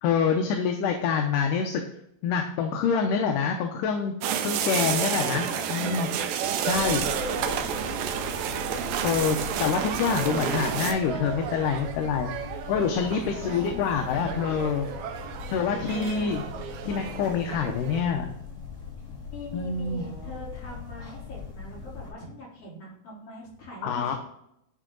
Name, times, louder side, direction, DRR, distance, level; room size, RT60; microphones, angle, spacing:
voice 1, 0.0-1.8 2.2-4.1 4.4-6.1 6.7-7.0 9.0-12.3 12.7-14.9 15.5-16.4 16.8-18.3 19.5-20.0 23.8-24.2, left 6 dB, 75° left, 4 dB, 2.2 m, -26 dB
sound 1, 4.2-10.9, right 8 dB, 90° right, 2.5 m, -29 dB
voice 2, 5.3-5.9 6.5-8.1 13.2-14.3 15.7-16.3 19.3-24.2, equal, 45° left, -6 dB, 4.4 m, -42 dB
sound 2, 5.3-18.0, right 8 dB, 70° right, 1.9 m, -39 dB
sound 3, 6.6-22.1, left 6 dB, 25° left, 3.7 m, -41 dB
11.0 x 4.6 x 3.8 m, 0.76 s
omnidirectional pair, 4.0 m